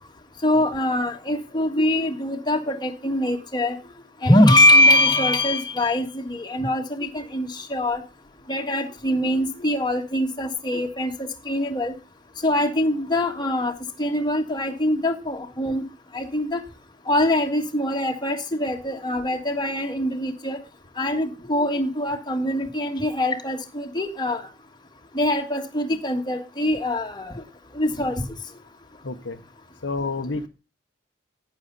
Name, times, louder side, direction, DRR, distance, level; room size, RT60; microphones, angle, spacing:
voice 1, 0.4-3.8 4.2-8.0 8.5-11.9 12.4-15.8 16.1-16.6 17.1-20.6 21.0-24.4 25.1-27.4 27.7-28.2, left 1 dB, 25° left, 4 dB, 1.6 m, -23 dB
voice 2, 29.0-29.4 29.8-30.5, left 3 dB, 70° left, 7 dB, 1.0 m, -29 dB
11.0 x 9.2 x 4.0 m, 0.29 s
head